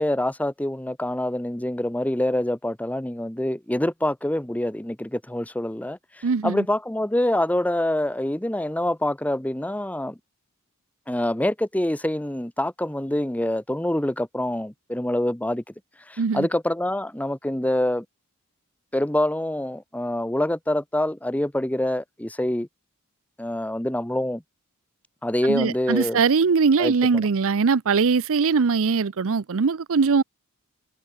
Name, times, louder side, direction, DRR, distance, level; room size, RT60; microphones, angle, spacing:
voice 1, 0.0-10.2 11.1-15.6 16.1-18.0 18.9-22.7 23.4-24.4 25.2-26.2 26.8-27.3, left 1 dB, 5° left, 0.9 m, -26 dB
voice 2, 6.2-6.6 16.2-16.5 25.5-30.2, right 5 dB, 65° right, 0.6 m, -21 dB
head